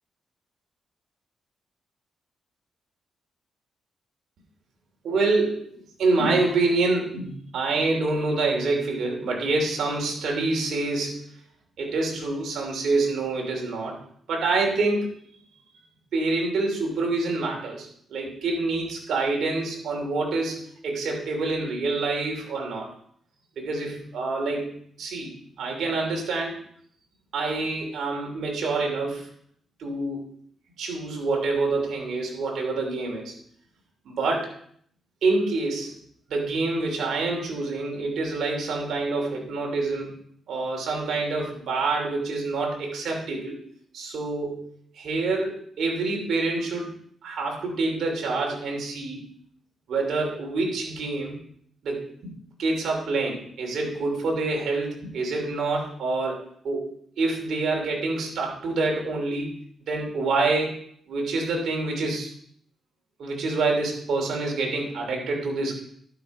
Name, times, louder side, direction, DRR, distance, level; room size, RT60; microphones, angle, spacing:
voice 1, 5.0-11.3 11.8-14.0 14.3-15.1 16.1-22.9 23.6-26.6 27.3-29.3 29.8-30.2 30.8-33.3 34.0-34.5 35.2-35.9 36.3-40.1 40.5-43.6 43.9-46.9 47.2-49.2 49.9-51.4 51.8-52.3 52.6-56.9 57.2-59.6 59.9-62.3 63.2-65.8, right 3 dB, 75° right, 1 dB, 3.1 m, -27 dB
12.0 x 6.2 x 4.9 m, 0.62 s
cardioid pair, 70°, 0 cm